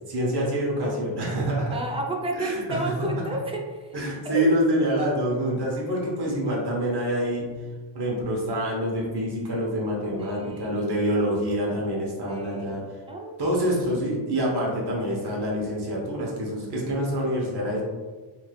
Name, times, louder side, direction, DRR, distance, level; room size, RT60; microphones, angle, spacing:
voice 1, 0.1-1.8 2.4-3.4 3.9-7.5 7.9-12.8 13.4-17.8, equal, 55° right, -3 dB, 0.9 m, -26 dB
voice 2, 1.7-3.9 4.2-4.5 10.2-10.8 12.3-12.8 13.1-13.4, right 1 dB, 15° right, -1 dB, 0.5 m, -31 dB
3.2 x 2.7 x 2.3 m, 1.3 s
wide cardioid pair, 75°, 47 cm